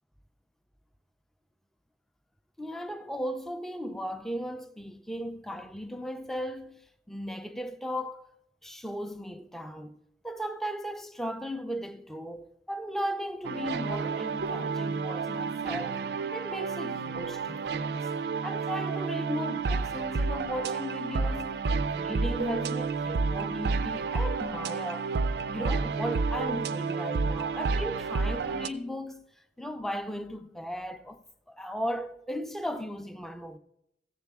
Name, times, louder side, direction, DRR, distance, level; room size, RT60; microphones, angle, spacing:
voice 1, 2.6-8.3 8.6-16.0 16.3-18.1 18.4-29.3 29.6-33.6, equal, ahead, 0.4 m, -36 dB
sound 1, 13.4-28.7, right 4 dB, 65° right, 0.4 m, -30 dB
15.0 x 7.3 x 3.4 m
head